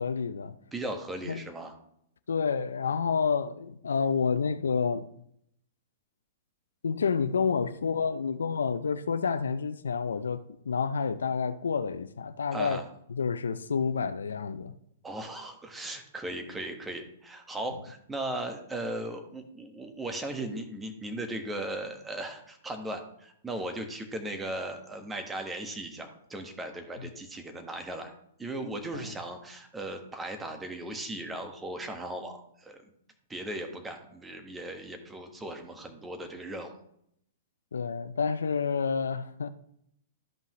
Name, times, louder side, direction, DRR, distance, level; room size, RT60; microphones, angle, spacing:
voice 1, 0.0-0.5 1.2-1.4 2.3-5.1 6.8-12.8 13.1-14.7 28.9-29.0 37.7-39.5, left 5 dB, 85° left, 0.5 m, -29 dB
voice 2, 0.7-1.7 12.5-12.8 15.0-28.1 28.4-32.8 33.3-36.7, right 1 dB, 10° right, 1.4 m, -37 dB
13.0 x 5.5 x 3.1 m
hypercardioid pair, 120°, 0 cm